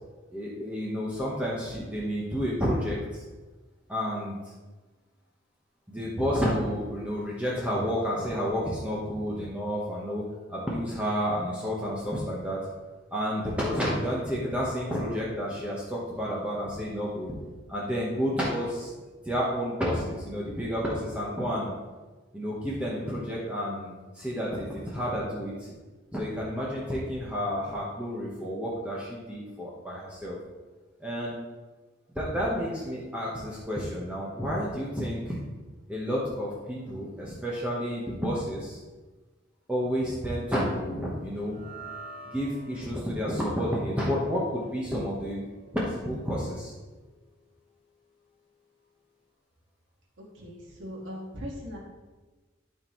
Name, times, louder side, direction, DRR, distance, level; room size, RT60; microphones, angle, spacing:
voice 1, 0.3-3.2 3.9-4.5 5.9-12.7 13.1-17.3 17.7-18.9 19.2-21.7 22.3-25.7 26.1-30.4 31.0-31.4 32.1-35.4 35.9-38.8 39.7-41.6 42.3-45.4 45.7-46.7, equal, 5° right, -6 dB, 1.1 m, -30 dB
sound 1, 41.4-47.8, right 3 dB, 30° left, 0.8 m, -49 dB
voice 2, 50.2-51.8, equal, 80° right, -4 dB, 1.9 m, -39 dB
12.5 x 4.4 x 3.1 m, 1.2 s
head